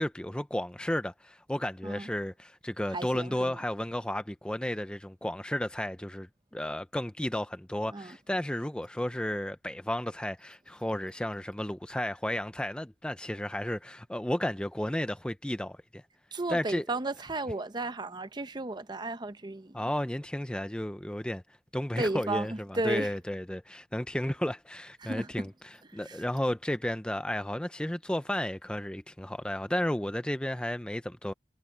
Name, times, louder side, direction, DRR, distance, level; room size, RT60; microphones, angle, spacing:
voice 1, 0.0-16.0 16.5-16.8 19.7-21.4 21.7-25.5 25.9-31.3, left 1 dB, 5° left, 0.5 m, -33 dB
voice 2, 2.9-3.6 7.9-8.2 16.3-19.8 22.0-23.1 25.0-25.5 25.9-26.2, right 2 dB, 25° right, 0.8 m, -34 dB
head